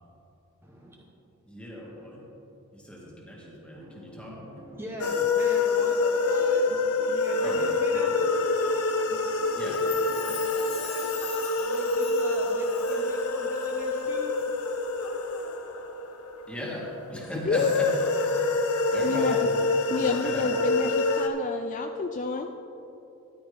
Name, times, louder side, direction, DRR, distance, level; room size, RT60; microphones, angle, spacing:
voice 1, 0.6-0.9 3.7-6.7 7.0-8.1 10.5-11.1 11.5-14.3, equal, 10° right, -2 dB, 1.0 m, -41 dB
voice 2, 1.5-2.3 2.7-4.5 7.4-8.2 9.6-9.9 16.5-20.6, left 1 dB, 5° left, -4 dB, 1.9 m, -37 dB
sound 1, 3.4-11.1, right 1 dB, 60° right, 2.4 m, -49 dB
sound 2, 5.0-16.8 17.5-21.3, left 3 dB, 90° left, 0.8 m, -26 dB
Chime, 9.6-13.3 13.6-13.7, left 7 dB, 55° left, 2.5 m, -42 dB
voice 3, 19.0-19.3 19.9-22.5, left 4 dB, 35° left, 6 dB, 0.3 m, -29 dB
13.5 x 11.0 x 3.4 m, 3.0 s
head